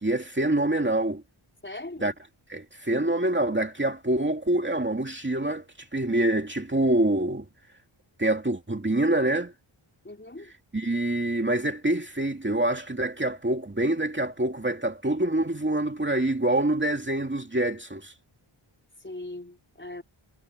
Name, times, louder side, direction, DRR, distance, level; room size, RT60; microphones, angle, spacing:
voice 1, 0.0-1.2 2.0-2.1 2.5-7.4 8.2-9.5 10.7-18.1, right 1 dB, 20° right, 2.4 m, -26 dB
voice 2, 1.6-2.1 10.0-10.5 19.0-20.0, left 2 dB, 20° left, 4.6 m, -40 dB
wide cardioid pair, 75°, 50 cm